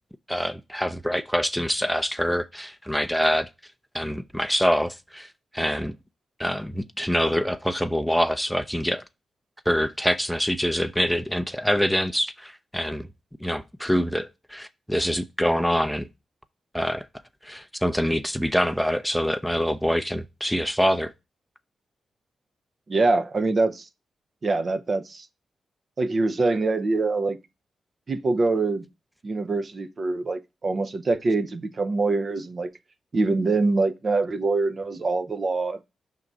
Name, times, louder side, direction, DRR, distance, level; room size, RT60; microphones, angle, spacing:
voice 1, 0.3-3.5 3.9-5.3 5.5-6.0 6.4-9.0 9.7-13.1 13.4-16.1 16.7-17.1 17.4-21.1, equal, ahead, 0.5 m, -25 dB
voice 2, 22.9-23.9 24.4-25.3 26.0-27.4 28.1-28.9 29.2-32.7 33.1-35.8, right 3 dB, 50° right, 0.7 m, -24 dB
5.5 x 3.8 x 6.0 m
cardioid pair, 55°, 0 cm